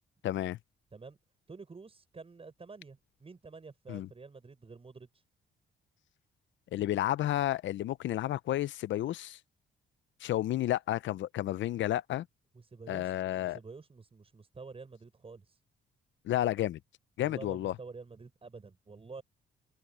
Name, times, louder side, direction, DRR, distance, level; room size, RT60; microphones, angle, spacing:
voice 1, 0.2-0.6 3.9-4.1 6.7-9.4 10.2-12.3 12.9-13.6 16.2-16.8 17.2-17.7, left 13 dB, 70° left, 0.6 m, -31 dB
voice 2, 1.5-5.2 12.5-15.6 17.2-19.2, right 4 dB, 30° right, 6.1 m, -49 dB
open air
cardioid pair, 90°, 20 cm